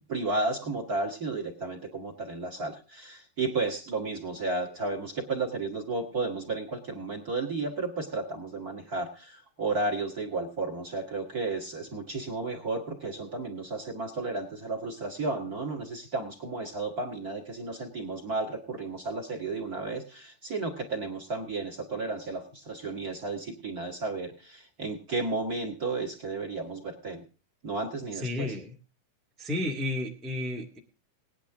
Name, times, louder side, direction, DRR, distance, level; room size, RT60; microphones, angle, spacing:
voice 1, 0.1-27.2 27.6-28.5, right 3 dB, 35° right, 5 dB, 1.6 m, -33 dB
voice 2, 28.1-28.7 29.4-30.8, left 2 dB, ahead, -1 dB, 0.4 m, -32 dB
19.0 x 10.0 x 3.6 m, 0.35 s
omnidirectional pair, 4.4 m